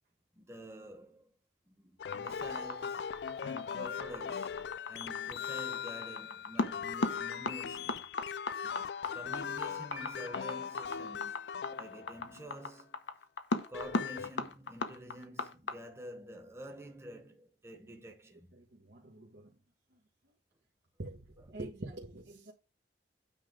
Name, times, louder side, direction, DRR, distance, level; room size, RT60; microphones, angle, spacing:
voice 1, 0.4-1.3 1.7-4.6 4.9-8.1 9.1-11.4 11.8-13.0 13.7-18.5, equal, 15° right, 1.2 m, -48 dB
sound 1, 2.0-12.5 13.5-14.3, left 7 dB, 65° left, 0.3 m, -40 dB
sound 2, 2.1-15.7, left 3 dB, 90° left, 1.1 m, -36 dB
Piano, 9.9-10.9, right 6 dB, 40° right, 1.8 m, -53 dB
voice 2, 18.5-19.5 21.0-22.5, right 2 dB, 75° right, 1.5 m, -46 dB
9.1 x 3.7 x 6.2 m
head